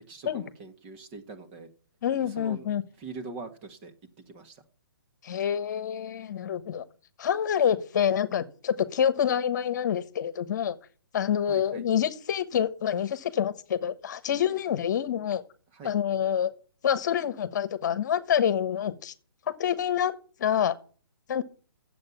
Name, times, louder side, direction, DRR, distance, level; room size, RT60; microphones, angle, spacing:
voice 1, 0.1-1.7 2.3-2.6 3.0-3.9 4.3-4.6 11.5-11.8 15.7-15.9, right 4 dB, 30° right, 7 dB, 1.7 m, -42 dB
voice 2, 2.0-2.8 5.2-6.8 7.2-10.8 11.1-15.4 15.8-16.5 16.8-19.1 19.6-20.1 20.4-20.7 21.3-21.4, left 9 dB, 50° left, 14 dB, 1.1 m, -27 dB
10.5 x 7.7 x 7.1 m, 0.40 s
hypercardioid pair, 150°, 12 cm